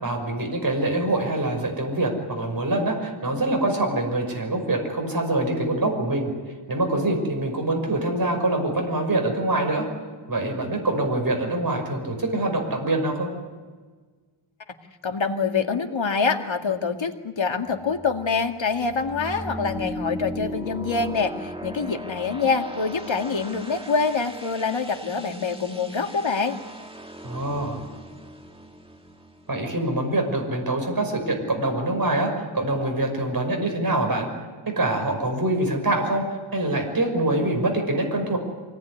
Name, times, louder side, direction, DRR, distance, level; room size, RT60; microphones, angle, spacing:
voice 1, 0.0-6.3 6.7-9.9 10.3-13.3 27.2-27.8 29.5-34.3 34.6-36.2 36.5-38.4, right 2 dB, 45° right, 2 dB, 5.9 m, -24 dB
voice 2, 15.0-26.6, left 5 dB, 70° left, 4 dB, 2.2 m, -25 dB
sound 1, 17.7-30.4, equal, 10° right, 1.8 m, -38 dB
25.5 x 19.0 x 9.7 m, 1.4 s
wide cardioid pair, 100°, 47 cm